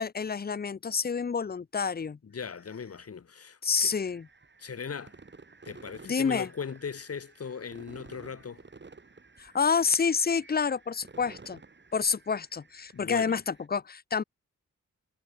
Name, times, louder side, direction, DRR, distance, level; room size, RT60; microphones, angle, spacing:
voice 1, 0.0-2.2 3.6-4.3 6.0-6.5 9.4-11.6 11.9-14.2, left 5 dB, 30° left, 0.7 m, -28 dB
voice 2, 2.2-3.9 4.6-5.1 5.6-8.7 12.9-13.3, left 6 dB, 50° left, 1.7 m, -38 dB
sound 1, 3.9-13.7, right 4 dB, 35° right, 4.2 m, -53 dB
wide cardioid pair, 90°, 31 cm